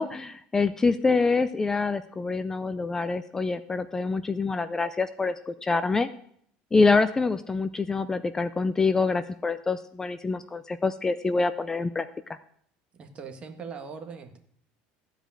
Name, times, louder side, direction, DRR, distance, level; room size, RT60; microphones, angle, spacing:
voice 1, 0.0-6.1 6.7-12.4, left 4 dB, 15° left, 13 dB, 0.4 m, -26 dB
voice 2, 12.9-14.4, right 5 dB, 35° right, 6 dB, 1.6 m, -40 dB
15.0 x 5.1 x 8.9 m, 0.67 s
supercardioid pair, 130°, 3 cm